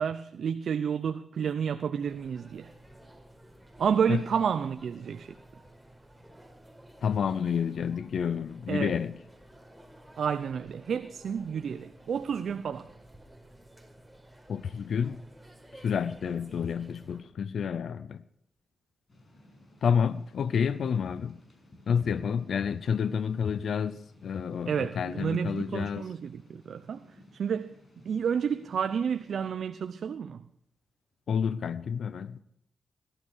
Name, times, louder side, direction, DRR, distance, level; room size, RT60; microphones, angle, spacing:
voice 1, 0.0-2.7 3.8-5.3 8.7-8.9 10.2-12.9 24.7-27.0 27.3-27.8 28.0-30.4, right 7 dB, 80° right, 0.6 m, -30 dB
sound 1, 2.0-17.2, right 1 dB, ahead, 5.0 m, -53 dB
voice 2, 7.0-9.1 14.5-15.2 15.7-18.2 19.8-21.4 21.9-26.1 31.3-32.4, left 7 dB, 80° left, 0.5 m, -29 dB
Thunder / Rain, 19.1-29.5, left 1 dB, 50° left, 7.0 m, -56 dB
18.0 x 12.5 x 6.3 m
cardioid pair, 60°, 0 cm